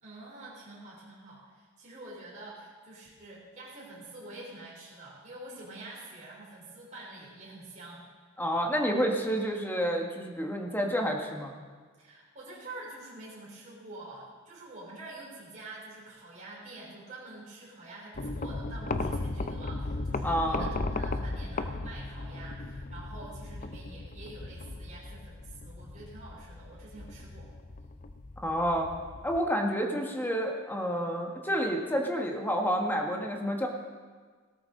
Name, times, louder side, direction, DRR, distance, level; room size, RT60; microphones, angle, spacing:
voice 1, 0.0-8.0 12.0-27.6, right 2 dB, 35° right, -6 dB, 3.8 m, -47 dB
voice 2, 8.4-11.5 20.2-20.7 28.4-28.9 29.2-33.7, equal, 10° left, 1 dB, 1.5 m, -29 dB
sound 1, 18.1-29.4, left 2 dB, 40° left, 0.6 m, -36 dB
17.5 x 13.0 x 3.8 m, 1.5 s
head